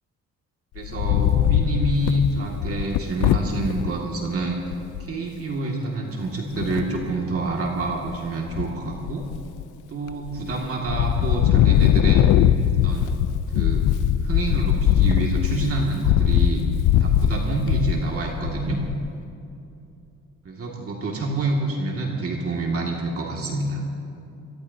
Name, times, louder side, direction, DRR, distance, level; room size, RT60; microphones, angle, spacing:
voice 1, 0.7-4.6 5.0-9.3 9.9-12.3 12.8-13.2 13.5-13.9 14.2-16.6 17.0-18.8 20.4-23.8, right 2 dB, 50° right, -1 dB, 2.2 m, -27 dB
Wind, 0.8-3.9 4.4-4.5 4.7-5.1 6.5-7.1 7.7-8.2 8.5-9.6 10.1-10.6 10.9-19.1, left 10 dB, 85° left, 0.6 m, -21 dB
24.0 x 18.5 x 2.8 m, 2.7 s
cardioid pair, 90°, 30 cm